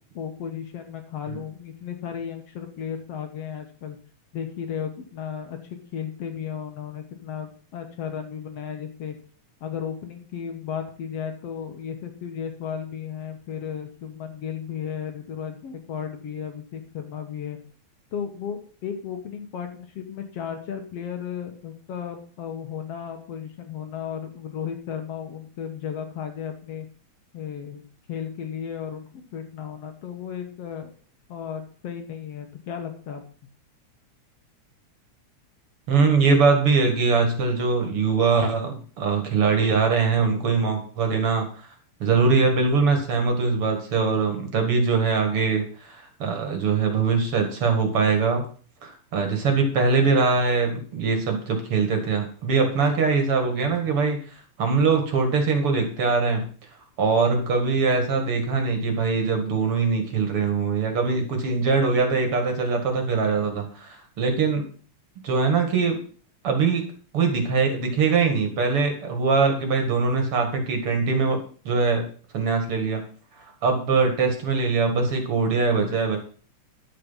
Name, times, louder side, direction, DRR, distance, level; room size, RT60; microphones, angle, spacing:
voice 1, 0.1-4.0 4.3-5.6 5.9-9.2 9.6-17.6 18.1-26.9 27.3-30.9 31.3-33.2, left 8 dB, 60° left, 5 dB, 2.2 m, -34 dB
voice 2, 35.9-41.7 42.0-48.4 48.8-54.2 54.6-56.4 57.0-64.7 65.2-66.0 66.4-66.8 67.1-71.4 71.6-72.1 72.3-73.0 73.4-76.2, right 4 dB, 50° right, 4 dB, 2.5 m, -22 dB
11.0 x 7.6 x 5.7 m, 0.42 s
omnidirectional pair, 3.3 m